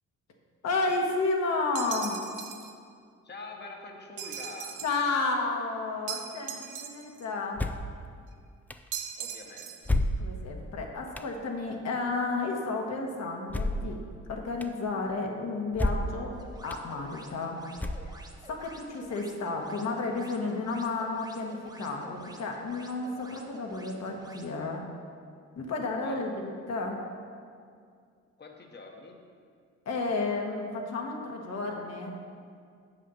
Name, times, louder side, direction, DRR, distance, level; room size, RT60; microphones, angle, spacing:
voice 1, 0.6-2.2 4.8-7.6 10.2-14.0 14.3-16.3 16.6-17.6 18.0-18.1 18.4-24.9 25.6-27.0 29.8-32.2, left 3 dB, 60° left, 1 dB, 1.4 m, -32 dB
sound 1, 1.8-2.7 4.2-5.1 6.1-7.3 8.9-9.9, right 9 dB, 80° right, 0.7 m, -39 dB
voice 2, 3.2-4.8 9.2-9.9 25.9-26.3 28.4-29.2, left 3 dB, 35° left, 2 dB, 1.1 m, -45 dB
sound 2, 7.6-7.9 8.7-8.8 9.8-10.5 11.2-11.3 13.5-14.0 14.6-14.7 15.7-16.2 16.7-16.8 17.8-18.3, left 1 dB, 5° left, 0.3 m, -29 dB
sound 3, 16.3-24.5, right 2 dB, 15° right, 0.9 m, -51 dB
8.0 x 5.8 x 6.2 m, 2.2 s
cardioid pair, 90°, 30 cm